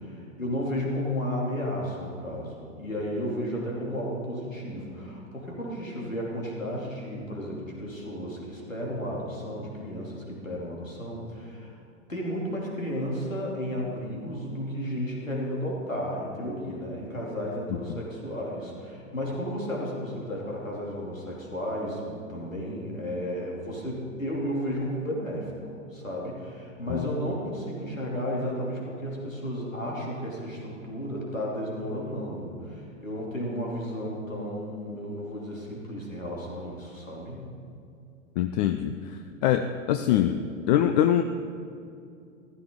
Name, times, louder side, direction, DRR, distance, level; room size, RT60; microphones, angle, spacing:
voice 1, 0.0-11.7 12.1-37.5, equal, 90° left, -3 dB, 2.9 m, -33 dB
voice 2, 38.4-39.0 39.4-40.4 40.7-41.2, left 11 dB, 35° left, 8 dB, 0.5 m, -23 dB
15.5 x 13.0 x 3.7 m, 2.5 s
figure-of-eight pair, 100°, 38 cm